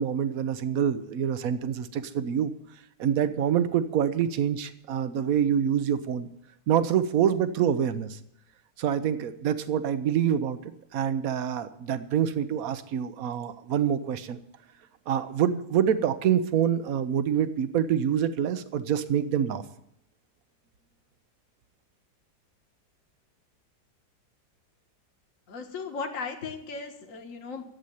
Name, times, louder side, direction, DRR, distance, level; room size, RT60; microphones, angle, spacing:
voice 1, 0.0-2.5 3.0-6.3 6.7-8.2 8.8-14.4 15.1-19.6, right 9 dB, 60° right, 12 dB, 1.1 m, -26 dB
voice 2, 25.5-27.6, left 4 dB, 45° left, 4 dB, 1.8 m, -36 dB
11.5 x 8.0 x 9.8 m, 0.77 s
omnidirectional pair, 2.0 m